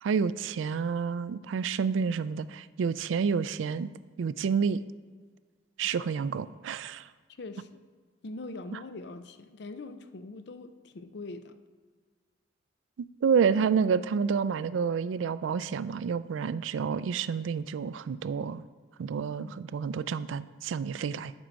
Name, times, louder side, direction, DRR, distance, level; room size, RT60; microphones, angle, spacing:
voice 1, 0.0-3.9 4.2-4.8 5.8-7.1 8.7-8.8 13.2-18.6 19.0-21.3, right 6 dB, 85° right, 16 dB, 0.3 m, -29 dB
voice 2, 7.4-7.8 8.2-11.5 19.2-19.6, left 2 dB, 60° left, 10 dB, 0.5 m, -42 dB
8.8 x 4.6 x 6.4 m, 1.5 s
head